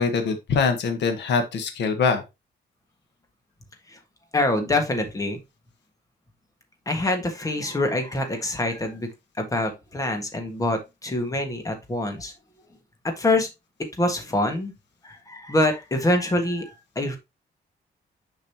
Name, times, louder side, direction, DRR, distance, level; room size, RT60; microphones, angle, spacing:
voice 1, 0.0-2.2, left 5 dB, 90° left, 7 dB, 1.3 m, -23 dB
voice 2, 4.3-5.4 6.8-9.1 9.4-12.3 13.0-13.5 14.0-14.7 15.0-17.2, left 2 dB, 20° left, 5 dB, 1.5 m, -25 dB
6.8 x 5.4 x 2.8 m, 0.23 s
wide cardioid pair, 160°, 18 cm